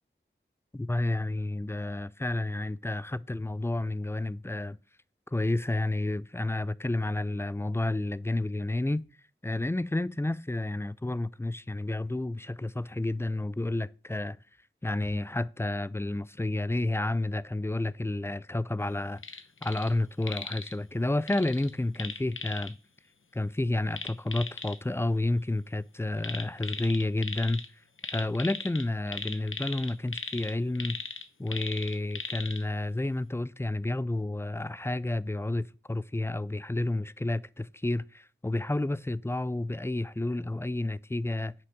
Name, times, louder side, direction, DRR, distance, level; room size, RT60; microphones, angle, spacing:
voice 1, 0.7-4.8 5.3-9.0 9.4-14.4 14.8-22.8 23.3-27.6 28.1-31.0 31.4-41.5, left 2 dB, 10° left, 0.4 m, -30 dB
sound 1, 19.2-19.9 20.2-20.7 21.3-22.7 23.9-24.8 26.2-27.7 28.0-32.6 33.1-33.2, left 4 dB, 80° left, 0.9 m, -38 dB
9.7 x 6.0 x 5.9 m
wide cardioid pair, 60°, 20 cm